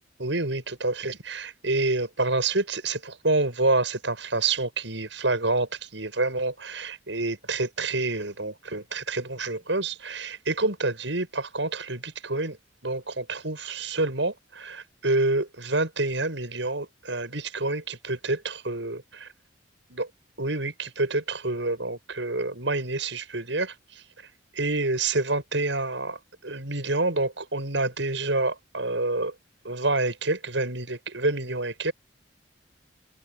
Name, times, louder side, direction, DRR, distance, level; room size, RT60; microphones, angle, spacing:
voice 1, 0.2-12.6 12.8-19.0 19.9-20.1 20.4-23.7 24.6-29.3 29.6-31.9, right 2 dB, 85° right, 7.2 m, -28 dB
head